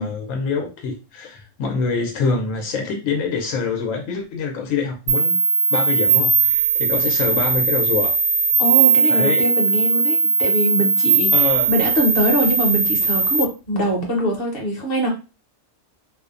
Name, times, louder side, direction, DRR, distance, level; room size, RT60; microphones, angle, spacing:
voice 1, 0.0-5.4 5.7-8.2 9.1-9.5 11.3-11.7, left 5 dB, 85° left, 2 dB, 1.0 m, -25 dB
sound 1, 5.1-13.4, right 5 dB, 60° right, 0.7 m, -18 dB
voice 2, 8.6-11.3 11.6-15.1, equal, 50° left, 1 dB, 0.9 m, -22 dB
2.6 x 2.1 x 2.4 m, 0.31 s
omnidirectional pair, 1.3 m